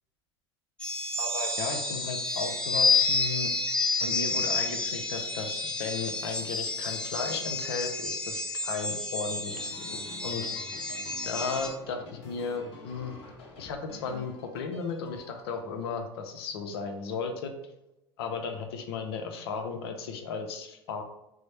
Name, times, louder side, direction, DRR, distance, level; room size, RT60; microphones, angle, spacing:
sound 1, 0.8-11.7, left 3 dB, 5° left, 0.7 m, -30 dB
voice 1, 1.2-3.5 4.0-10.5 11.3-13.1 13.6-17.5 18.2-21.0, left 5 dB, 75° left, 5 dB, 0.6 m, -35 dB
sound 2, 9.5-15.4, left 3 dB, 50° left, 0.9 m, -48 dB
3.1 x 2.0 x 4.1 m, 0.92 s
hypercardioid pair, 85°, 13 cm